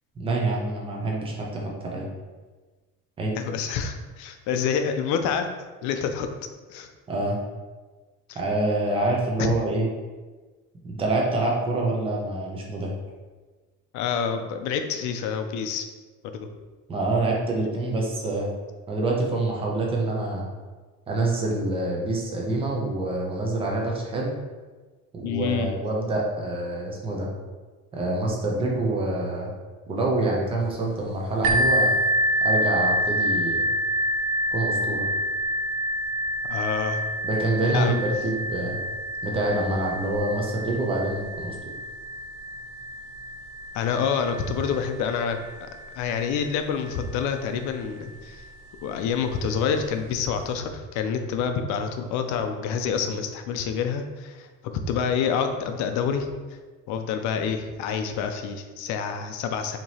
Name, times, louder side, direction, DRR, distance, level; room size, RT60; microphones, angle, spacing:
voice 1, 0.2-2.1 3.2-3.3 7.1-7.4 8.3-9.9 10.8-12.9 16.9-18.5 18.9-20.5 21.1-24.3 25.1-27.3 27.9-29.5 29.9-31.9 32.4-33.6 34.5-35.1 37.2-38.8 39.2-41.5 53.0-53.1, right 2 dB, 15° right, -1 dB, 0.5 m, -26 dB
voice 2, 3.3-5.5 5.8-6.3 6.7-6.9 8.3-8.4 9.4-9.5 13.9-15.9 16.3-16.5 25.2-25.8 36.5-37.0 37.6-38.0 43.7-45.7 46.0-48.4 48.8-54.5 54.9-56.3 56.9-59.8, left 6 dB, 65° left, 6 dB, 0.5 m, -27 dB
sound 1, 31.4-47.0 47.7-47.8 48.4-48.5, equal, 75° right, 0.5 m, -28 dB
4.6 x 2.9 x 2.8 m, 1.3 s
cardioid pair, 180°, 32 cm